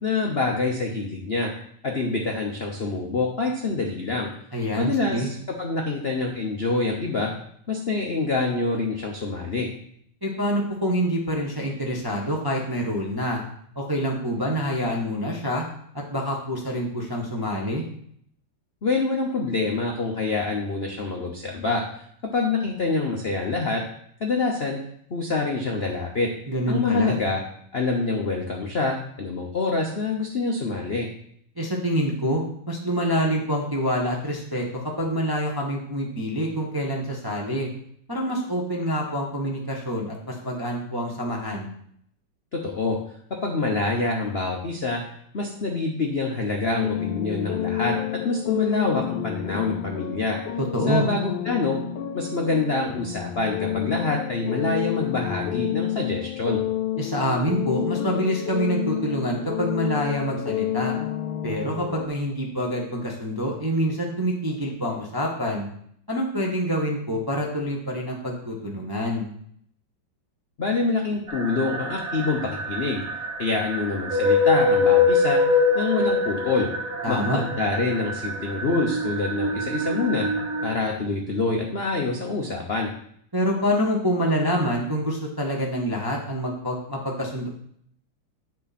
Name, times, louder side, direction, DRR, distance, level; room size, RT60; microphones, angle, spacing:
voice 1, 0.0-1.5 1.8-4.3 4.8-7.3 7.7-9.7 18.8-21.8 22.3-23.8 24.2-24.8 25.1-26.3 26.7-27.4 27.7-31.1 42.5-43.0 43.4-45.0 45.3-47.9 48.2-50.4 50.9-51.8 52.1-56.6 70.6-73.0 73.4-75.4 75.7-76.7 77.1-80.3 80.6-82.9, left 3 dB, 45° left, 1 dB, 0.7 m, -26 dB
voice 2, 4.5-5.3 10.2-13.4 13.7-15.6 16.1-17.8 26.5-27.2 31.6-37.7 38.1-41.7 50.6-51.1 57.0-60.9 61.4-65.7 66.1-69.2 77.0-77.4 83.3-87.5, equal, 15° right, -1 dB, 0.9 m, -26 dB
sound 1, 46.8-62.1, left 12 dB, 75° left, 1.3 m, -29 dB
sound 2, 71.3-80.7, left 3 dB, 45° right, 1.5 m, -24 dB
8.5 x 6.6 x 4.2 m, 0.66 s
omnidirectional pair, 2.4 m